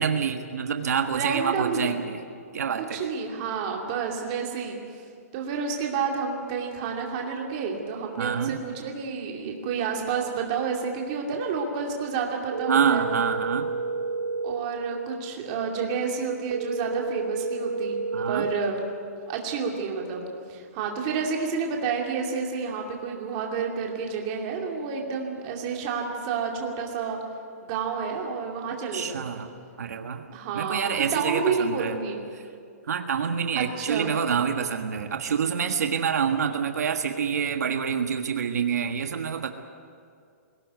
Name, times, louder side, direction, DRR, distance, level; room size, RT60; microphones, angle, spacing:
voice 1, 0.0-2.2 2.5-3.1 8.2-8.6 12.7-13.7 18.1-18.5 28.9-29.5 29.8-30.2 30.5-32.0 32.3-32.4 32.9-39.5, right 7 dB, 75° right, 5 dB, 1.5 m, -27 dB
voice 2, 1.1-2.0 2.8-4.8 5.3-13.0 14.4-18.0 18.3-18.8 19.3-27.2 27.6-29.3 30.3-32.2 33.6-34.1, right 5 dB, 25° right, 0 dB, 2.6 m, -30 dB
sound 1, 12.5-14.5 16.5-18.5, right 3 dB, 55° right, 1.9 m, -30 dB
22.0 x 17.5 x 9.4 m, 2.3 s
hypercardioid pair, 175°, 9 cm